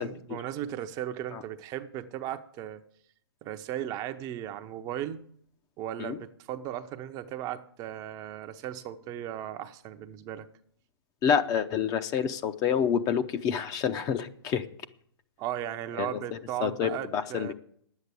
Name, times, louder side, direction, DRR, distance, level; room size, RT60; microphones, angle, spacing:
voice 1, 0.0-2.8 3.4-5.2 5.8-10.5 15.4-17.5, right 11 dB, 25° right, 0.7 m, -36 dB
voice 2, 11.2-14.7 16.0-16.2 16.6-17.5, left 8 dB, 25° left, 0.6 m, -28 dB
10.0 x 8.2 x 8.3 m
hypercardioid pair, 140°, 14 cm